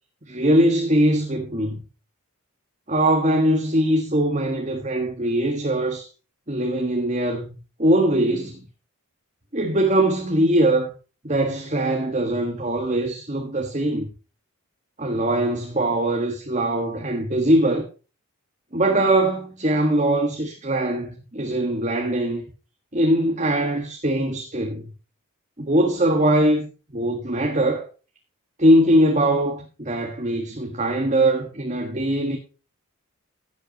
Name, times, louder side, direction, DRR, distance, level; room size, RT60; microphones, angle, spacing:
voice 1, 0.3-1.8 2.9-6.1 6.5-8.6 9.5-10.9 11.2-14.1 15.0-17.8 18.7-22.5 22.9-24.9 25.6-26.7 26.9-27.9 28.6-32.4, right 1 dB, 30° right, 1.6 m, -21 dB
16.0 x 8.1 x 3.0 m
head